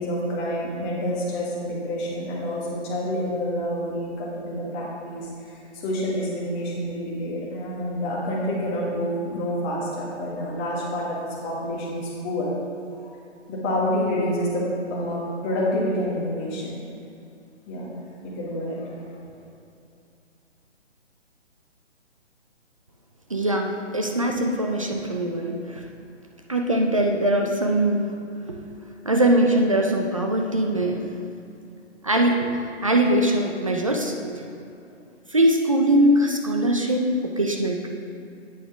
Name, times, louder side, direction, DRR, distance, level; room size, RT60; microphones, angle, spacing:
voice 1, 0.0-11.2 11.4-12.5 13.0-13.1 13.5-16.8 17.7-17.9 18.2-19.2, equal, 15° left, -5 dB, 1.2 m, -28 dB
voice 2, 23.3-25.8 26.5-28.1 28.5-28.6 29.0-31.1 32.0-32.5 32.8-34.5 35.3-37.9, right 1 dB, 30° right, 2 dB, 0.4 m, -22 dB
8.7 x 7.0 x 3.4 m, 2.6 s
figure-of-eight pair, 145°, 36 cm